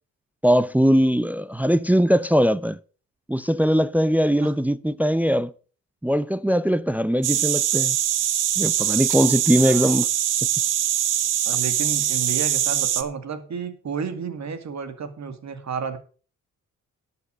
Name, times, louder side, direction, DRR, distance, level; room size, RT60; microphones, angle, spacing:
voice 1, 0.4-2.8 3.3-5.5 6.0-8.0 8.6-10.1, equal, 5° right, 0.5 m, -20 dB
sound 1, 7.2-13.0, right 11 dB, 75° right, 1.2 m, -23 dB
voice 2, 9.6-10.0 11.5-16.0, right 6 dB, 55° right, 2.3 m, -31 dB
11.5 x 7.0 x 6.5 m
cardioid pair, 70°, 32 cm